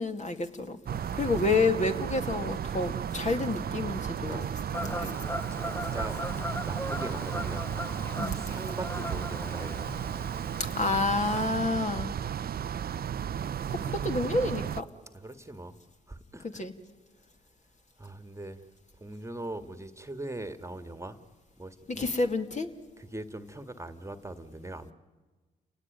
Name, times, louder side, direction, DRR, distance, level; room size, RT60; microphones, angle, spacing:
voice 1, 0.0-4.5 4.8-5.2 8.2-8.4 10.7-12.1 12.8-12.9 13.7-14.9 16.4-16.7 21.9-22.7, left 3 dB, 40° left, 2.4 m, -29 dB
sound 1, 0.8-14.8, right 9 dB, 50° right, 0.7 m, -34 dB
Fowl / Bird vocalization bird call bird song, 4.7-11.5, left 1 dB, 10° left, 0.7 m, -39 dB
voice 2, 5.5-7.7 8.3-9.9 11.0-11.1 15.2-15.8 16.1-16.6 18.0-18.7 19.0-21.2 21.6-22.3 23.0-24.9, right 1 dB, 15° right, 1.8 m, -41 dB
29.5 x 18.5 x 9.3 m
hypercardioid pair, 45°, 20 cm